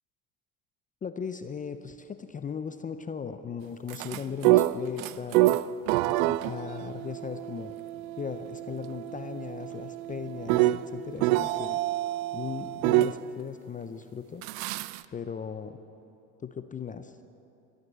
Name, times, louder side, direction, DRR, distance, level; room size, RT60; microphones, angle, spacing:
voice 1, 1.0-5.6 6.1-7.7 8.2-11.8 12.3-14.4 15.1-15.8 16.4-17.1, left 7 dB, 20° left, 10 dB, 0.5 m, -38 dB
sound 1, 3.9-13.2 14.4-15.0, right 16 dB, 75° right, 0.5 m, -27 dB
13.5 x 9.4 x 7.9 m, 2.8 s
hypercardioid pair, 90°, 42 cm